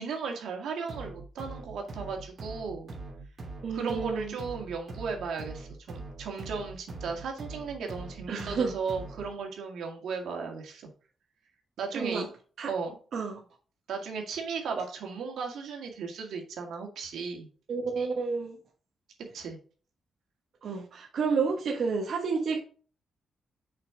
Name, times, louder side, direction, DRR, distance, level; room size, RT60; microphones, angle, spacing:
voice 1, 0.0-2.9 3.7-10.9 11.8-12.3 12.7-13.0 13.9-17.5 19.3-19.6, right 5 dB, 85° right, 2 dB, 2.0 m, -36 dB
sound 1, 0.9-9.4, right 3 dB, 40° right, 2.6 m, -43 dB
voice 2, 3.6-4.3 8.3-8.7 11.9-12.2 12.6-12.7 13.1-13.3 17.7-18.6 20.6-22.6, right 5 dB, 60° right, 0 dB, 1.2 m, -30 dB
6.6 x 5.2 x 3.7 m, 0.40 s
cardioid pair, 125°, 0 cm